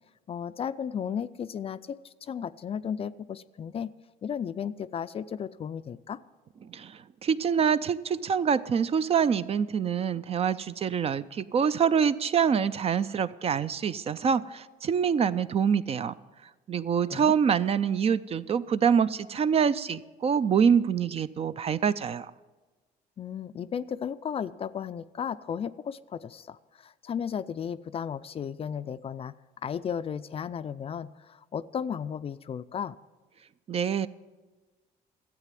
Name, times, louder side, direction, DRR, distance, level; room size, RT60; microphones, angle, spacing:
voice 1, 0.3-3.9 4.2-6.2 17.1-17.3 23.2-29.3 29.6-33.0, left 7 dB, 35° left, 15 dB, 0.4 m, -34 dB
voice 2, 6.7-16.1 16.7-22.3 33.7-34.1, right 7 dB, 35° right, 15 dB, 0.4 m, -25 dB
13.0 x 8.3 x 7.5 m, 1.3 s
cardioid pair, 110°, 17 cm